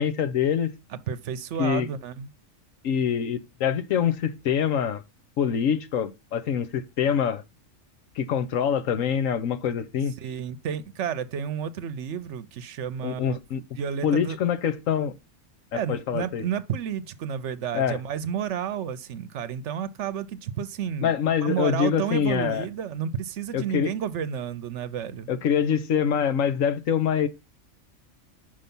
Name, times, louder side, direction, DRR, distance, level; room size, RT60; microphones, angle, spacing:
voice 1, 0.0-0.7 1.6-1.9 2.8-5.0 5.4-7.4 8.2-10.1 13.0-13.6 14.0-15.2 15.7-16.4 17.7-18.0 21.0-22.7 23.5-23.9 25.3-27.3, left 8 dB, 80° left, 1.2 m, -25 dB
voice 2, 0.9-2.3 10.2-13.4 13.7-14.4 15.7-25.3, right 8 dB, 70° right, 0.9 m, -31 dB
5.7 x 5.2 x 5.3 m
omnidirectional pair, 1.4 m